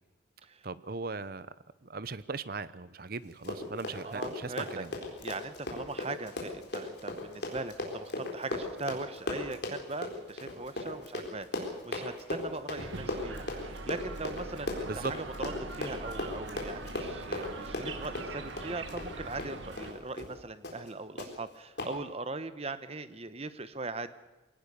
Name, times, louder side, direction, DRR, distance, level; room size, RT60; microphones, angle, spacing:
voice 1, 0.6-1.5 1.8-4.9 14.8-15.2, right 4 dB, 50° right, 16 dB, 0.7 m, -38 dB
Run, 3.3-19.9 20.2-20.3 20.6-20.9 21.2-21.3 21.8-21.9, left 2 dB, 55° left, 4.1 m, -37 dB
voice 2, 4.0-4.8 5.2-24.1, right 3 dB, 30° right, 12 dB, 1.0 m, -40 dB
sound 1, 12.8-19.9, right 3 dB, 75° right, 1.7 m, -42 dB
22.0 x 18.0 x 6.8 m, 1.1 s
head